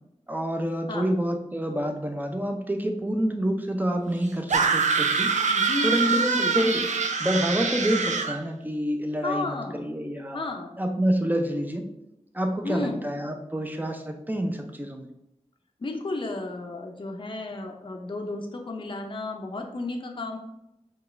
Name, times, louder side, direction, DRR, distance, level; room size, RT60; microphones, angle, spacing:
voice 1, 0.3-5.3 5.8-6.8 7.2-10.4 10.8-11.8 12.3-15.1, equal, 15° right, 4 dB, 0.6 m, -27 dB
sound 1, 4.5-8.4, right 5 dB, 70° right, 0.4 m, -24 dB
voice 2, 5.5-6.9 9.2-9.9 10.3-10.8 12.6-13.1 15.8-20.4, left 2 dB, 40° left, 3 dB, 0.5 m, -33 dB
4.7 x 2.3 x 3.2 m, 0.85 s
wide cardioid pair, 50°, 13 cm